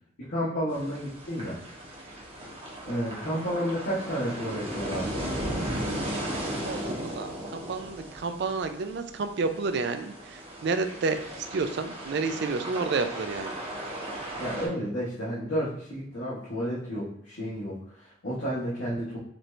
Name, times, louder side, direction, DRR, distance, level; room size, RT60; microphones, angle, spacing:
voice 1, 0.2-1.6 2.8-5.2 14.4-19.2, equal, 75° left, -9 dB, 1.2 m, -31 dB
sound 1, 0.7-14.7, right 1 dB, 30° right, 1.0 m, -36 dB
voice 2, 6.3-11.2 11.5-13.5, right 4 dB, 55° right, 9 dB, 0.3 m, -30 dB
4.5 x 2.6 x 3.2 m, 0.70 s
head